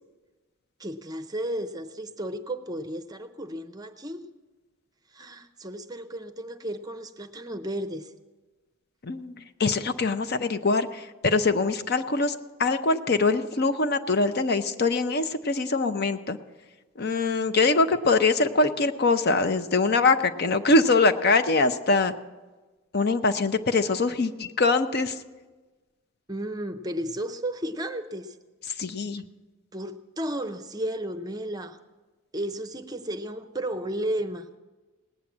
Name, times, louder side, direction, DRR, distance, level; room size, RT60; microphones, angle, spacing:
voice 1, 0.8-4.3 5.1-8.1 26.3-28.4 29.7-31.8 32.3-34.5, right 1 dB, 20° right, 9 dB, 0.6 m, -33 dB
voice 2, 9.0-16.4 17.0-22.1 22.9-25.2 28.8-29.2, left 3 dB, 45° left, 9 dB, 0.6 m, -23 dB
18.5 x 9.1 x 7.2 m, 1.2 s
head